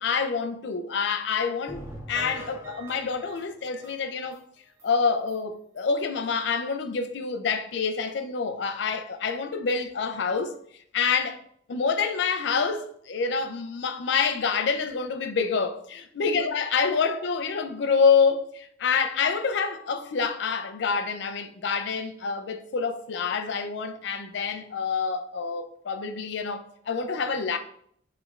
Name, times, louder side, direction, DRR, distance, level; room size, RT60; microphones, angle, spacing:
voice 1, 0.0-1.8 2.1-4.4 4.8-10.5 10.9-11.4 11.7-27.6, left 5 dB, 65° left, 0.4 m, -27 dB
sound 1, 1.7-4.4 4.8-4.9 5.3-5.4 5.8-5.9, equal, 15° right, 0.4 m, -43 dB
4.9 x 3.2 x 2.4 m
head